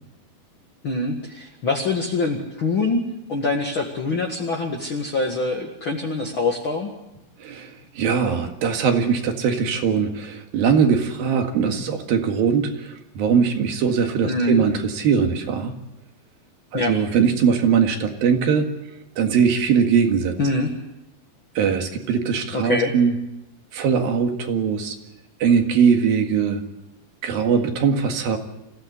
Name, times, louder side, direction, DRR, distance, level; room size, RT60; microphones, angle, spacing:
voice 1, 0.8-3.0 3.3-6.9 14.3-14.6 16.7-16.9 20.4-20.7 22.5-22.9, left 3 dB, 40° left, 0 dB, 2.1 m, -24 dB
voice 2, 7.4-15.7 16.7-18.7 19.2-20.3 21.6-23.1 23.7-25.0 25.4-26.6 27.2-28.4, right 6 dB, 70° right, 5 dB, 3.7 m, -21 dB
26.5 x 16.0 x 8.2 m, 0.91 s
omnidirectional pair, 4.4 m